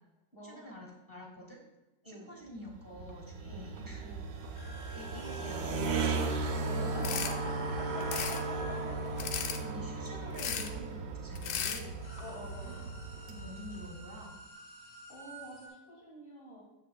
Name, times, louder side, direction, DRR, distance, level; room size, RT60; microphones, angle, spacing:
voice 1, 0.4-1.6 2.0-4.1 4.5-6.3 9.6-12.0 12.6-13.0 13.3-14.4, left 1 dB, 15° right, -1 dB, 1.1 m, -48 dB
voice 2, 2.0-2.4 3.4-3.7 4.0-4.3 6.8-9.4 12.2-12.9 15.1-16.6, left 2 dB, 40° left, -7 dB, 1.7 m, -47 dB
sound 1, 2.7-14.3, right 3 dB, 75° right, 1.3 m, -36 dB
sound 2, 4.5-10.3 11.1-11.2 11.5-15.7, equal, 55° left, 2.7 m, -52 dB
sound 3, 7.0-7.3 8.0-8.4 9.2-9.6 10.4-10.7 11.3-11.8, left 8 dB, 80° left, 1.2 m, -35 dB
9.5 x 7.2 x 2.2 m, 1.1 s
omnidirectional pair, 1.6 m